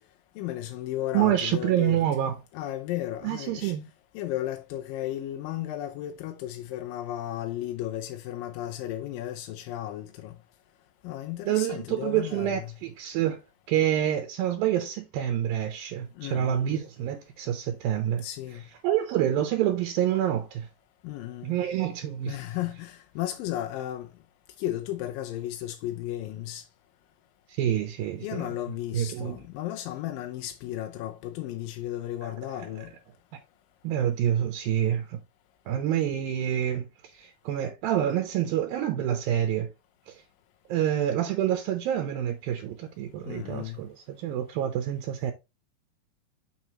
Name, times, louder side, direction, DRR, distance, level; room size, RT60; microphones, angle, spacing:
voice 1, 0.4-2.0 2.5-3.8 4.1-10.4 11.0-12.7 16.2-16.8 18.2-18.6 21.0-21.6 22.3-24.1 24.6-26.7 28.2-32.9 43.2-43.8, left 13 dB, 80° left, 2.2 m, -34 dB
voice 2, 1.1-2.4 3.2-3.9 11.4-13.4 13.7-20.7 21.4-22.4 22.7-22.8 27.5-28.6 28.9-29.4 32.2-32.9 33.8-35.2 35.7-39.7 40.1-40.2 40.7-45.3, right 11 dB, 75° right, 2.4 m, -27 dB
6.5 x 6.3 x 2.9 m
omnidirectional pair, 4.4 m